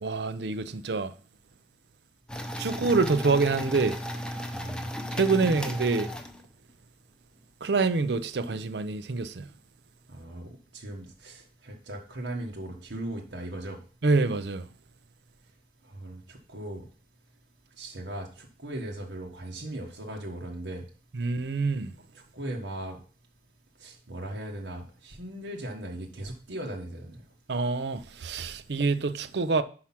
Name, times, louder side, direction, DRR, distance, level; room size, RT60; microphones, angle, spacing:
voice 1, 0.0-1.1 2.6-4.0 5.1-6.1 7.6-9.5 14.0-14.6 21.2-21.9 27.5-29.6, right 4 dB, 65° right, 0.6 m, -26 dB
sound 1, 2.3-6.7, equal, 5° left, 0.6 m, -35 dB
voice 2, 2.8-3.2 4.5-4.9 5.4-5.6 10.1-13.8 15.9-16.8 17.8-20.8 22.1-23.0 23.8-27.2, right 1 dB, 80° right, 1.2 m, -38 dB
5.8 x 4.9 x 5.8 m
head